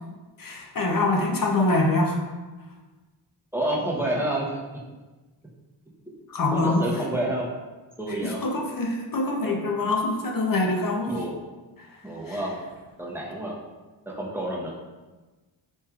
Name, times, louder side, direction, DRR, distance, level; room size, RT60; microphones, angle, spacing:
voice 1, 0.4-2.2 6.3-6.8 8.1-11.1 11.8-11.9 12.3-12.4, left 2 dB, 45° left, 1 dB, 0.7 m, -25 dB
voice 2, 3.5-4.6 6.5-7.5 8.0-8.4 11.1-11.3 12.0-12.6 13.0-13.6 14.1-14.7, right 1 dB, 5° right, -5 dB, 0.8 m, -28 dB
4.4 x 3.2 x 2.4 m, 1.2 s
cardioid pair, 60°, 49 cm